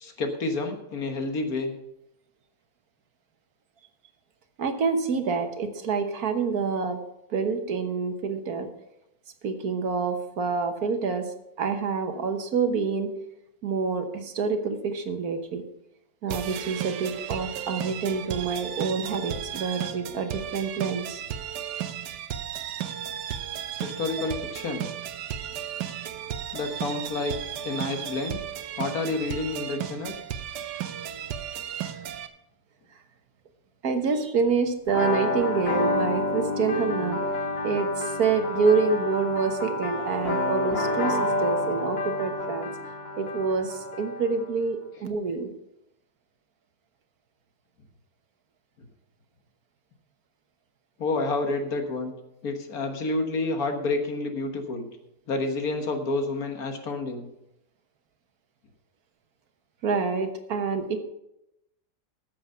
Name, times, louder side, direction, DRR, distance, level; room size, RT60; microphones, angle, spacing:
voice 1, 0.0-1.7 23.8-24.9 26.5-27.3 27.6-28.4 28.8-30.1 51.0-52.1 52.4-54.9 55.3-57.3, left 3 dB, 65° left, 6 dB, 1.8 m, -29 dB
voice 2, 4.6-7.0 7.3-8.7 9.4-11.3 11.6-13.1 13.6-15.6 16.2-21.2 31.1-31.2 33.8-37.3 37.6-42.7 43.2-45.5 59.8-61.0, right 5 dB, 65° right, 7 dB, 1.6 m, -27 dB
sound 1, 16.3-32.3, right 10 dB, 85° right, 1.4 m, -34 dB
sound 2, 34.9-44.5, left 2 dB, 40° left, 1.8 m, -29 dB
14.0 x 7.5 x 5.6 m, 0.87 s
omnidirectional pair, 1.7 m